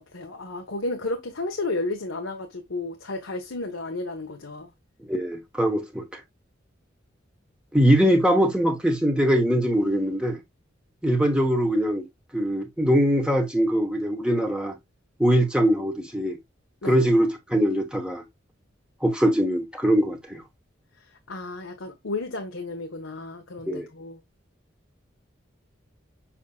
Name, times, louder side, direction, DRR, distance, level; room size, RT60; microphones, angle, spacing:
voice 1, 0.0-4.7 16.8-17.0 21.0-24.2, left 2 dB, 90° left, 1.2 m, -32 dB
voice 2, 5.0-6.2 7.7-10.4 11.0-12.1 12.3-14.8 15.2-16.4 16.8-18.2 19.0-20.4 23.7-23.9, equal, 5° right, 1.1 m, -22 dB
7.2 x 5.6 x 2.3 m
head